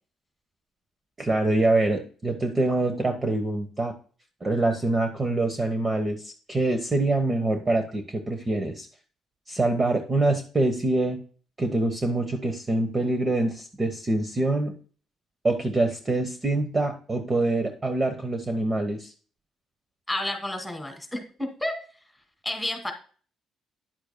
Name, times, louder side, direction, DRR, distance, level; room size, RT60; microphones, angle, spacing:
voice 1, 1.2-3.9 4.4-8.9 9.5-11.2 11.6-14.7 15.4-19.1, right 2 dB, 25° right, 5 dB, 1.2 m, -25 dB
voice 2, 20.1-21.8 22.4-22.9, left 1 dB, ahead, 5 dB, 2.3 m, -30 dB
10.5 x 7.9 x 2.2 m, 0.40 s
cardioid pair, 105°, 0 cm